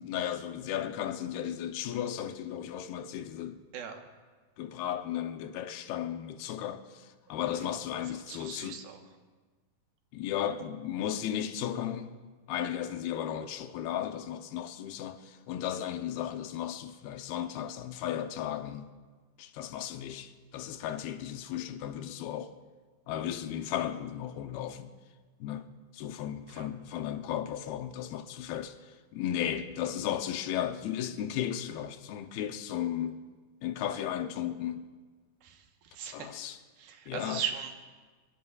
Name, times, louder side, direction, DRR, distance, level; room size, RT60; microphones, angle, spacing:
voice 1, 0.0-3.6 4.6-8.8 10.1-12.1 12.5-18.9 19.4-22.5 23.1-24.9 25.4-28.8 29.1-33.2 33.6-34.9 36.1-36.6 37.1-37.4, left 10 dB, 90° left, 2.7 m, -35 dB
voice 2, 8.0-9.0 26.5-26.7 35.4-37.7, right 8 dB, 85° right, 3.0 m, -39 dB
23.0 x 23.0 x 2.4 m
omnidirectional pair, 4.2 m